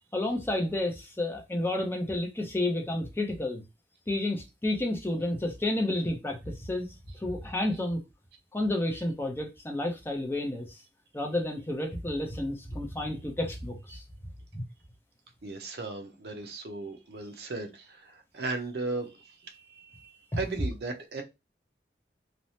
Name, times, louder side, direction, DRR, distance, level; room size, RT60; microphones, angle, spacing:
voice 1, 0.1-3.6 4.1-8.0 8.5-10.8 11.1-14.0 14.5-14.6, left 1 dB, 15° left, 0.5 m, -31 dB
voice 2, 15.4-21.2, right 3 dB, 65° right, 0.6 m, -37 dB
3.2 x 2.0 x 2.7 m
head